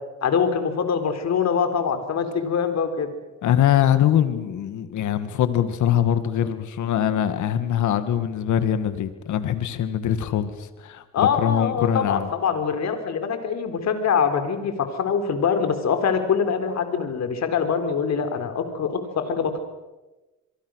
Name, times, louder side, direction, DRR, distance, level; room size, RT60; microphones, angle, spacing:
voice 1, 0.2-3.1 11.1-19.6, left 6 dB, 60° left, 8 dB, 3.9 m, -24 dB
voice 2, 3.4-12.3, left 10 dB, 75° left, 11 dB, 2.0 m, -23 dB
26.0 x 23.5 x 6.5 m, 1.1 s
cardioid pair, 90°, 30 cm